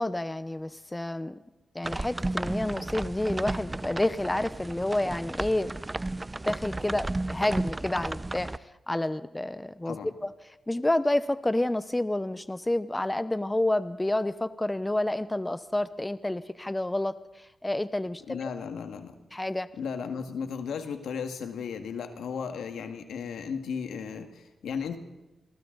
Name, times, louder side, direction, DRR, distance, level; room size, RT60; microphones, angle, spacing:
voice 1, 0.0-1.4 1.7-5.7 6.5-8.5 8.9-10.0 10.2-10.3 10.7-18.5 19.3-19.7, left 1 dB, 15° left, 14 dB, 0.8 m, -29 dB
sound 1, 1.8-8.6, right 2 dB, 25° right, 0.6 m, -33 dB
voice 2, 18.3-19.2 19.8-25.0, left 6 dB, 85° left, 6 dB, 2.0 m, -35 dB
28.5 x 22.5 x 4.0 m, 1.0 s
cardioid pair, 55°, 0 cm